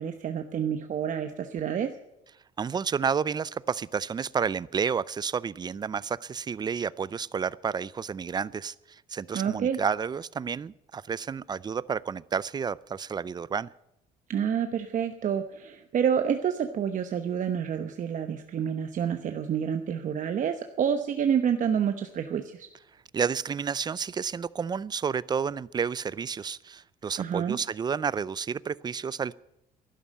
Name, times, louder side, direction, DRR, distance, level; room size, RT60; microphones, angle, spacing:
voice 1, 0.0-1.9 9.3-9.8 14.3-22.7 27.2-27.6, right 8 dB, 50° right, 7 dB, 1.0 m, -28 dB
voice 2, 2.6-13.7 23.1-29.3, right 6 dB, 25° right, 21 dB, 0.4 m, -30 dB
12.0 x 11.5 x 8.7 m, 0.85 s
cardioid pair, 110°, 17 cm